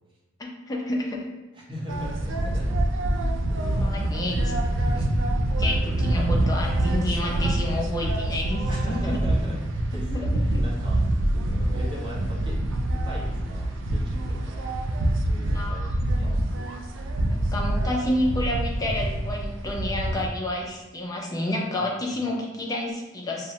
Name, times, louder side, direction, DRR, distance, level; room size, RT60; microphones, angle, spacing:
voice 1, 0.4-1.3 3.8-4.5 4.9-5.1 5.6-9.2 10.1-10.6 15.5-15.8 17.3-23.5, left 1 dB, 20° left, -2 dB, 0.4 m, -29 dB
voice 2, 1.7-2.9 3.5-4.2 4.5-4.9 5.5-5.8 8.7-12.6 12.9-14.7 15.2-16.4 21.8-22.2, equal, 25° right, -6 dB, 0.7 m, -39 dB
sound 1, 1.9-20.3, right 1 dB, 80° right, 0.3 m, -26 dB
2.7 x 2.0 x 2.7 m, 1.2 s
head